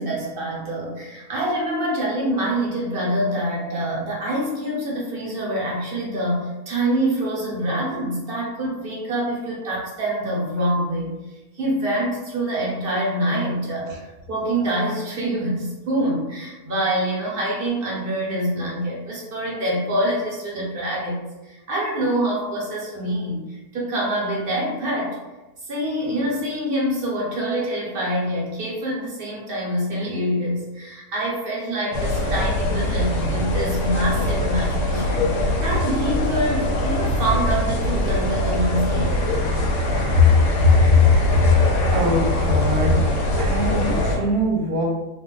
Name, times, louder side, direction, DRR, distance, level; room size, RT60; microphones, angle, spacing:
voice 1, 0.0-11.1 11.5-25.2 25.6-39.3, right 1 dB, 45° right, -4 dB, 0.9 m, -25 dB
sound 1, 31.9-44.2, left 1 dB, 65° left, 0.8 m, -22 dB
voice 2, 40.6-41.5 41.9-44.8, left 3 dB, 80° right, -1 dB, 1.1 m, -19 dB
2.5 x 2.2 x 3.7 m, 1.1 s
omnidirectional pair, 1.6 m